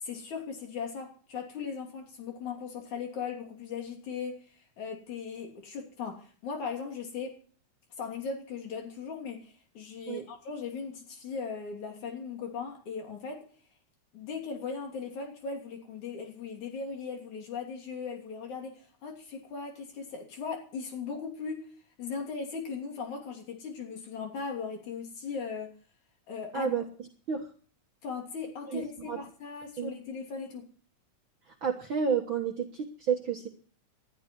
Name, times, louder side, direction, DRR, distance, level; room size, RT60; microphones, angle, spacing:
voice 1, 0.0-7.3 8.0-13.4 14.1-21.6 22.0-25.7 26.3-26.7 28.0-30.6, left 5 dB, 70° left, 2 dB, 4.5 m, -38 dB
voice 2, 26.5-26.9 27.3-27.5 28.7-29.2 29.8-29.9 31.5-33.5, right 6 dB, 50° right, 2 dB, 1.7 m, -30 dB
20.0 x 11.5 x 4.6 m, 0.43 s
omnidirectional pair, 3.5 m